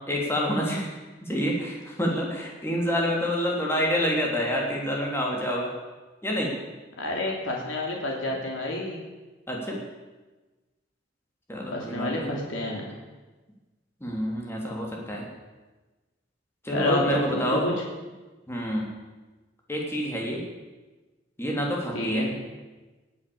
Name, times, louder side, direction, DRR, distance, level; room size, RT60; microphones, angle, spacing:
voice 1, 0.1-0.9 1.2-5.7 6.2-6.5 9.5-9.8 11.5-12.3 14.0-15.3 16.6-17.7 18.5-18.9 19.7-20.4 21.4-22.3, equal, 15° left, -2 dB, 3.2 m, -27 dB
voice 2, 7.0-9.0 11.7-12.9 16.7-17.7 21.9-22.3, left 1 dB, 85° left, -1 dB, 2.9 m, -29 dB
18.5 x 8.6 x 7.0 m, 1.2 s
head